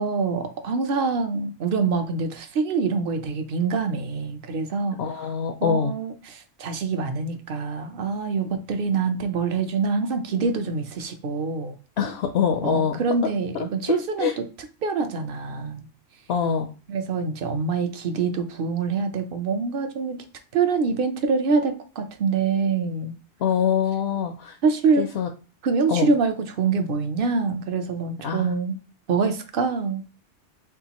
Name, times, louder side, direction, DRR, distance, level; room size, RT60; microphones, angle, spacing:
voice 1, 0.0-5.3 5.6-11.8 12.6-14.4 14.8-15.9 16.9-20.2 20.5-23.1 24.6-25.0 25.6-28.8 29.1-30.0, right 4 dB, 55° right, 8 dB, 0.9 m, -25 dB
voice 2, 5.0-5.9 12.0-13.0 13.5-14.3 16.3-16.7 23.4-24.6 25.0-25.3 25.9-26.1 28.2-28.5, left 7 dB, 70° left, 5 dB, 0.8 m, -24 dB
7.2 x 2.4 x 3.0 m, 0.34 s
omnidirectional pair, 1.1 m